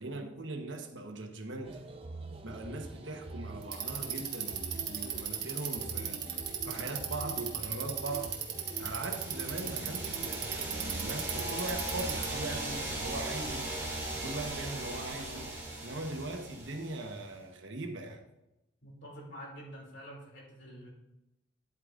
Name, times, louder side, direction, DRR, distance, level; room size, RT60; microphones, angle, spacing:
voice 1, 0.0-1.8 2.4-6.2 6.6-8.4 8.8-13.7 14.1-15.6 15.8-18.2, right 2 dB, 85° right, 1.1 m, -40 dB
sound 1, 1.6-11.5, right 2 dB, 30° right, 0.7 m, -45 dB
Bicycle, 3.6-12.4, right 10 dB, 60° right, 1.2 m, -36 dB
sound 2, 8.5-17.2, right 1 dB, 15° right, 2.1 m, -38 dB
voice 2, 18.8-20.9, equal, 75° left, 2.8 m, -47 dB
10.5 x 8.4 x 2.5 m
head